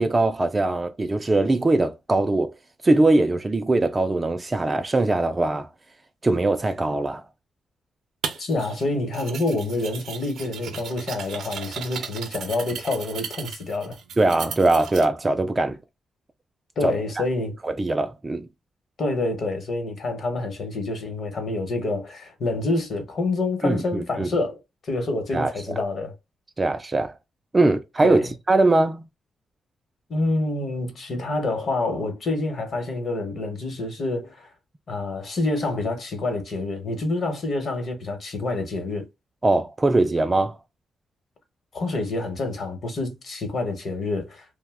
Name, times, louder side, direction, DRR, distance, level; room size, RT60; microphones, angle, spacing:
voice 1, 0.0-2.5 2.8-5.7 6.2-7.2 14.2-15.8 16.8-17.2 17.6-18.5 23.6-24.3 25.3-25.8 26.6-27.2 27.5-29.0 39.4-40.6, right 2 dB, 20° right, 0.3 m, -21 dB
sound 1, 8.2-8.8 9.1-15.1, right 7 dB, 75° right, 0.5 m, -36 dB
voice 2, 8.4-14.0 16.8-17.6 19.0-26.1 28.0-28.3 30.1-34.5 34.9-39.1 41.7-44.4, left 2 dB, 50° left, 0.9 m, -27 dB
2.7 x 2.1 x 3.4 m
wide cardioid pair, 150°, 0 cm